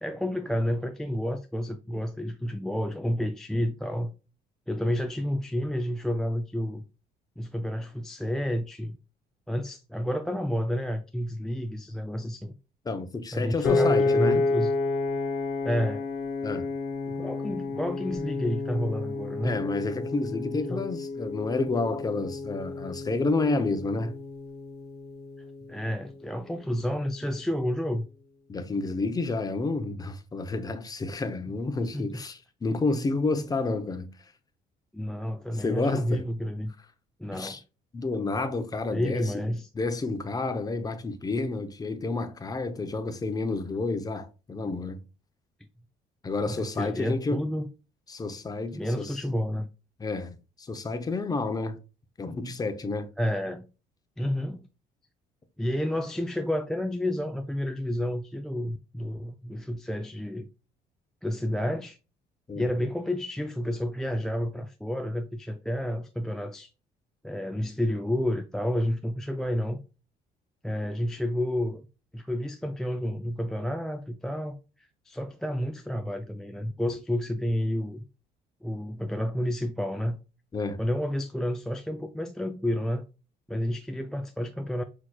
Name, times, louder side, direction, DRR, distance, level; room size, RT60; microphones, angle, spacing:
voice 1, 0.0-4.1 4.7-6.8 7.4-9.0 9.5-12.5 13.3-14.7 15.6-16.1 17.1-19.6 20.5-20.9 25.7-28.1 31.9-32.2 34.9-36.7 37.2-37.6 38.9-39.7 46.5-47.7 48.7-49.7 53.2-53.7 54.2-54.7 55.6-60.5 61.2-62.0 62.5-66.7 67.2-69.8 70.6-71.8 72.1-78.0 78.6-80.2 80.8-83.0 83.5-84.8, equal, 5° left, 0.3 m, -30 dB
voice 2, 12.9-14.4 16.4-16.6 19.4-24.2 28.5-34.1 35.6-36.2 37.3-37.6 37.9-39.3 39.7-45.0 46.2-47.4 48.1-49.2 50.0-51.8 52.2-53.1 62.5-62.7 80.5-80.8, left 3 dB, 20° left, 0.7 m, -30 dB
Piano, 13.6-25.9, left 3 dB, 70° left, 0.8 m, -30 dB
6.4 x 2.9 x 2.2 m
cardioid pair, 110°, 17 cm